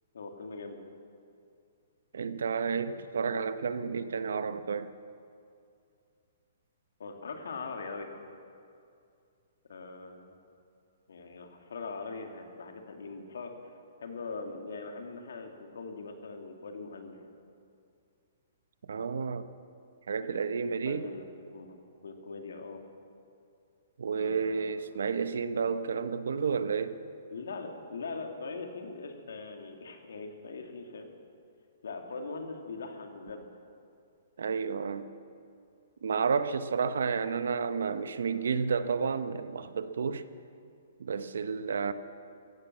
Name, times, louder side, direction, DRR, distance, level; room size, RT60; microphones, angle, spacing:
voice 1, 0.1-0.8 7.0-8.1 9.7-10.4 11.1-13.5 14.0-17.2 20.2-21.2 21.5-21.8 22.0-22.8 24.1-25.0 27.3-31.1 31.8-33.5 36.8-37.1, left 4 dB, 85° left, 4 dB, 2.2 m, -41 dB
voice 2, 2.1-4.9 18.9-19.5 20.1-21.1 24.0-27.0 34.4-35.1 36.0-40.2 41.0-41.9, right 5 dB, 85° right, 12 dB, 0.8 m, -31 dB
15.5 x 11.5 x 7.7 m, 2.4 s
hypercardioid pair, 180°, 0 cm